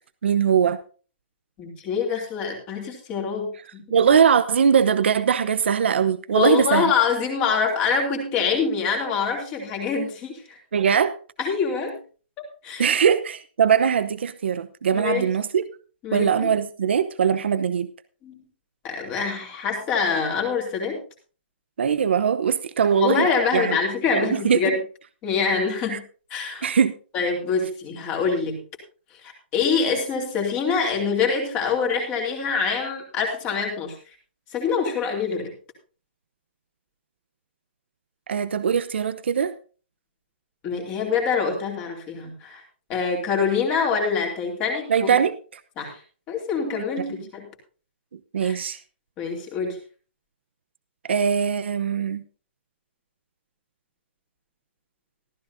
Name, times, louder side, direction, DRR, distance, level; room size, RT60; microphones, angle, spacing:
voice 1, 0.2-0.8 3.9-6.9 10.7-11.1 12.8-15.7 16.1-17.9 21.8-23.8 24.1-24.6 25.9-26.0 26.6-26.9 38.3-39.5 44.9-45.3 48.3-48.8 51.0-52.2, right 7 dB, 70° right, 12 dB, 0.9 m, -21 dB
voice 2, 1.6-3.8 6.3-10.6 11.4-12.0 12.4-12.9 14.9-15.2 16.0-16.5 18.2-18.4 18.8-21.0 23.0-24.8 25.2-26.0 26.3-26.7 27.1-28.6 29.2-33.9 34.5-35.5 40.6-42.6 42.9-45.2 45.8-46.0 46.3-47.4 48.4-48.6 49.2-49.8, left 5 dB, 15° left, 2 dB, 2.8 m, -25 dB
15.5 x 13.0 x 2.7 m, 0.38 s
hypercardioid pair, 180°, 6 cm